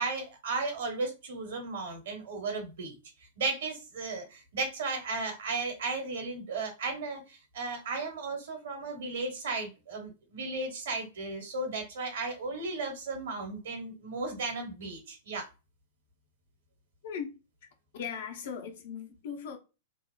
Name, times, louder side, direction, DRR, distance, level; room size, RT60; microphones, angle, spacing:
voice 1, 0.0-2.9 3.4-15.5, right 3 dB, 60° right, 0.9 m, -35 dB
voice 2, 17.0-17.7 17.9-19.6, left 7 dB, 55° left, 0.5 m, -39 dB
2.8 x 2.0 x 2.3 m
figure-of-eight pair, 100°, 0 cm